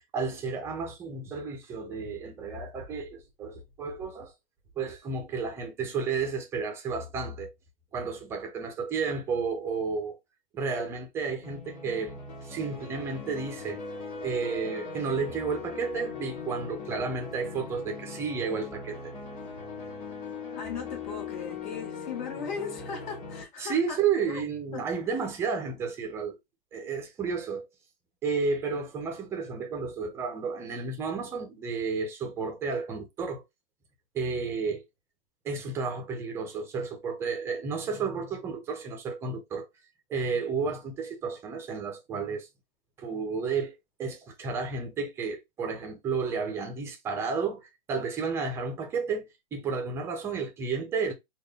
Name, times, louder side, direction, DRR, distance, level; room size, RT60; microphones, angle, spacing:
voice 1, 0.1-4.3 4.8-7.5 7.9-10.2 10.5-12.1 12.4-13.8 14.2-19.1 23.6-26.4 26.7-27.6 28.2-33.4 34.1-34.8 35.4-39.7 40.1-42.5 43.0-51.1, right 5 dB, 10° right, 0.5 m, -32 dB
sound 1, 11.4-23.4, left 4 dB, 25° left, 1.7 m, -40 dB
voice 2, 20.5-24.0 24.3-24.4 24.7-25.1, left 5 dB, 50° left, 1.8 m, -38 dB
3.8 x 2.4 x 3.3 m
hypercardioid pair, 160°, 29 cm